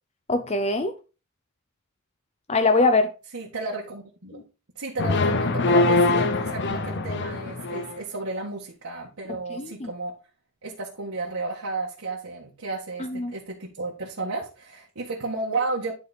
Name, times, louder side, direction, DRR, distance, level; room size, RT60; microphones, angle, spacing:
voice 1, 0.3-0.9 2.5-3.1 4.3-4.4 9.6-9.9 13.0-13.3, left 3 dB, 30° left, 0.6 m, -22 dB
voice 2, 3.3-4.4 4.7-10.1 10.6-15.9, right 3 dB, 80° right, 1.6 m, -33 dB
sound 1, 5.0-8.0, left 2 dB, 55° left, 0.8 m, -23 dB
10.5 x 4.2 x 4.2 m
head